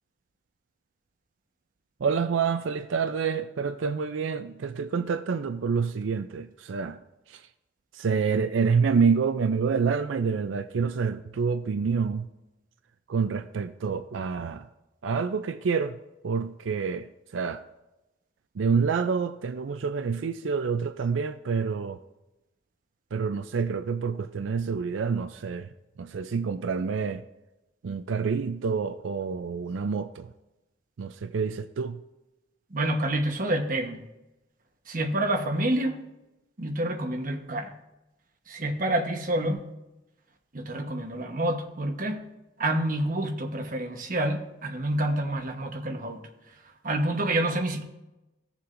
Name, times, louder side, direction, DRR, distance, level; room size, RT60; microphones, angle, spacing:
voice 1, 2.0-7.0 7.3-7.5 7.9-12.3 13.1-14.7 15.0-16.0 16.2-17.6 18.6-22.0 23.1-25.7 26.0-27.2 27.8-30.3 31.0-32.0, right 5 dB, 90° right, 0.4 m, -27 dB
voice 2, 32.7-34.0 34.9-36.0 36.6-37.7 38.5-39.6 40.5-42.2 42.6-46.2 46.8-47.8, right 1 dB, 45° right, 1.1 m, -28 dB
16.5 x 7.0 x 2.6 m
head